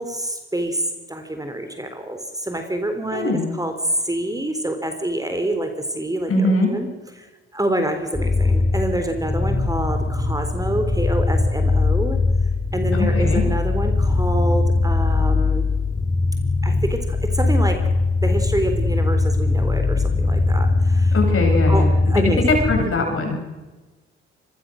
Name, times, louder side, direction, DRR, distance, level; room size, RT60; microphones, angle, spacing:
voice 1, 0.0-6.9 7.2-7.3 7.5-12.2 12.7-15.7 16.6-17.8 18.2-21.2 21.7-22.4, right 1 dB, 10° right, 7 dB, 3.7 m, -27 dB
voice 2, 3.1-3.5 6.3-6.7 12.9-13.4 21.1-22.2 22.5-23.4, left 2 dB, 50° left, 3 dB, 7.9 m, -21 dB
sound 1, 8.1-22.8, left 3 dB, 20° left, 7.2 m, -20 dB
25.0 x 21.5 x 6.4 m, 1.2 s
hypercardioid pair, 45°, 29 cm